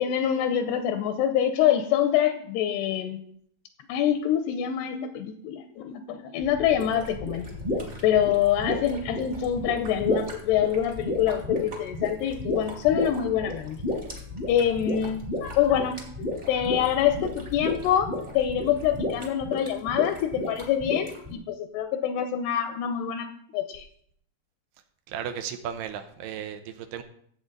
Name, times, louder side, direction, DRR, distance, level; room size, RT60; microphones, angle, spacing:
voice 1, 0.0-3.2 3.9-7.5 8.0-13.8 14.5-23.3 23.5-23.9, left 10 dB, 80° left, 7 dB, 2.8 m, -25 dB
sound 1, 6.4-19.2, left 4 dB, 40° right, 1.6 m, -44 dB
sound 2, 6.7-21.3, left 1 dB, 20° right, 1.3 m, -32 dB
voice 2, 25.1-27.0, right 8 dB, 80° right, 7 dB, 2.8 m, -35 dB
13.5 x 8.2 x 3.9 m, 0.64 s
omnidirectional pair, 4.8 m